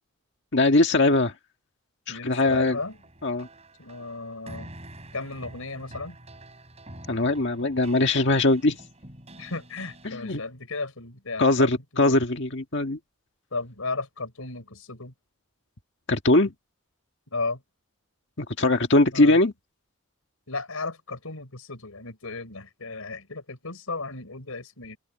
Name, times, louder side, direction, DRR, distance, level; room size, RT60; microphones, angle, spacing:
voice 1, 0.5-1.3 2.1-2.8 3.2-3.5 7.1-8.8 10.1-10.4 11.4-13.0 16.1-16.5 18.4-19.5, left 2 dB, 55° left, 1.7 m, -21 dB
voice 2, 2.1-3.0 3.8-4.7 5.1-6.2 9.4-12.2 13.5-15.1 17.3-17.6 19.1-19.4 20.5-25.0, left 3 dB, 80° left, 4.6 m, -34 dB
Script Node II.c, 2.5-10.1, right 1 dB, 30° right, 6.4 m, -47 dB
open air
head